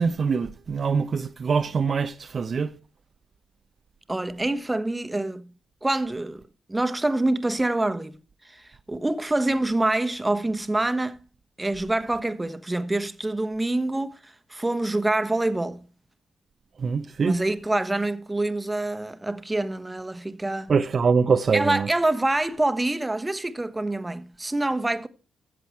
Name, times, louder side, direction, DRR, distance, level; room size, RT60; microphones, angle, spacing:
voice 1, 0.0-2.7 16.8-17.4 20.7-21.9, right 5 dB, 55° right, 0.7 m, -23 dB
voice 2, 4.1-5.5 5.8-6.4 6.7-8.2 8.4-11.2 11.6-15.8 17.2-20.7 21.5-25.1, right 2 dB, 20° right, 1.2 m, -26 dB
13.5 x 7.7 x 4.6 m
hypercardioid pair, 45°, 0 cm